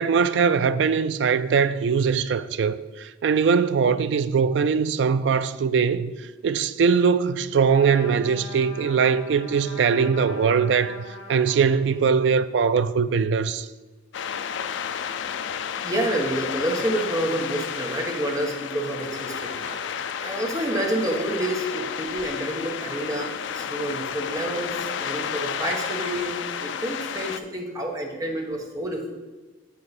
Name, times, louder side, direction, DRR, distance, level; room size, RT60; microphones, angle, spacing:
voice 1, 0.0-6.1 6.4-11.0 11.3-13.7, right 6 dB, 65° right, 0.3 m, -21 dB
Trumpet, 7.6-12.2, left 2 dB, 90° left, 1.6 m, -42 dB
sound 1, 14.1-27.4, left 7 dB, 70° left, 0.4 m, -32 dB
voice 2, 15.8-19.5 20.2-29.1, right 1 dB, 20° right, 1.1 m, -28 dB
Human voice, 18.7-23.8, right 1 dB, 45° right, 2.7 m, -49 dB
7.4 x 6.8 x 4.2 m
head